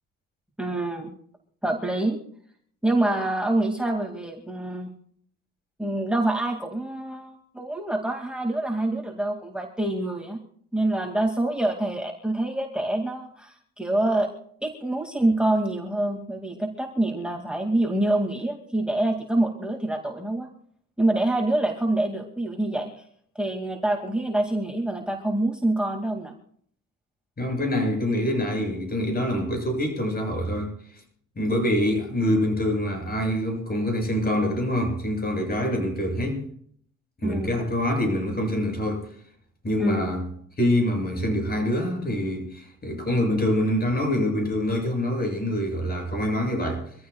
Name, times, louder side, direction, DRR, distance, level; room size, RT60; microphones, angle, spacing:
voice 1, 0.6-1.1 1.6-2.2 2.8-4.9 5.8-10.4 10.7-14.3 14.6-20.5 21.0-22.9 23.4-26.3 37.2-37.6 39.8-40.1, right 1 dB, 5° right, 3 dB, 2.3 m, -26 dB
voice 2, 27.4-31.0 31.4-36.4 37.2-39.1 39.6-40.3 40.6-46.9, left 1 dB, 30° left, 2 dB, 7.6 m, -25 dB
25.5 x 15.0 x 2.4 m, 0.62 s
cardioid pair, 90°, 30 cm